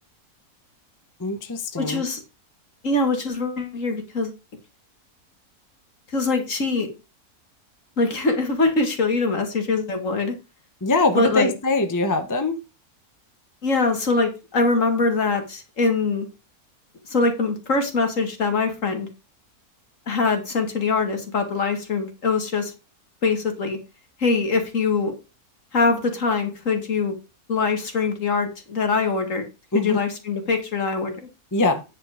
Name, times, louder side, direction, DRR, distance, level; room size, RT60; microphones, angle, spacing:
voice 1, 1.2-2.0 10.8-12.6 29.7-30.0 31.5-31.8, left 2 dB, 15° left, 0.9 m, -22 dB
voice 2, 1.8-2.2 2.8-4.3 6.1-6.9 8.0-10.4 11.1-11.5 13.6-16.3 17.1-19.1 20.1-22.7 23.2-23.8 24.2-25.1 25.7-27.2 27.5-29.4 29.7-31.1, left 3 dB, 55° left, 2.3 m, -23 dB
9.6 x 5.6 x 4.9 m
omnidirectional pair, 1.6 m